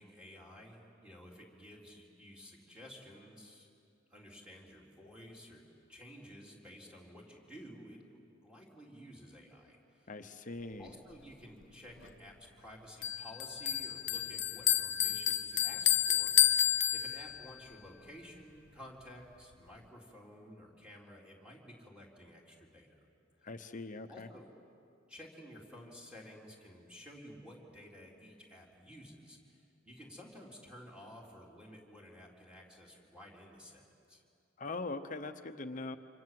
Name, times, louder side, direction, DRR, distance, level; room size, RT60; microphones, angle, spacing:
voice 1, 0.0-3.7 4.1-5.6 5.9-10.1 10.8-23.0 24.1-24.5 25.1-33.8 34.1-34.2, equal, 5° right, -3 dB, 3.9 m, -53 dB
voice 2, 10.1-10.9 23.4-24.3 34.6-36.0, left 3 dB, 40° left, 8 dB, 1.0 m, -41 dB
Bell, 13.0-17.5, left 11 dB, 65° left, 0.7 m, -30 dB
28.5 x 26.0 x 7.8 m, 2.5 s
head